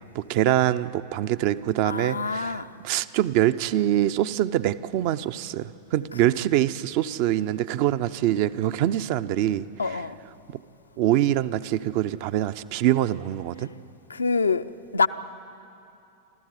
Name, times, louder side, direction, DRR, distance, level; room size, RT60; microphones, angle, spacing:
voice 1, 0.0-2.5 2.8-9.7 11.0-13.7, right 13 dB, 45° right, 13 dB, 0.5 m, -24 dB
voice 2, 1.8-2.7 9.8-10.2 14.1-14.6 14.9-15.1, left 4 dB, 75° left, 10 dB, 0.5 m, -25 dB
28.0 x 13.5 x 8.1 m, 2.7 s
figure-of-eight pair, 90°, 0 cm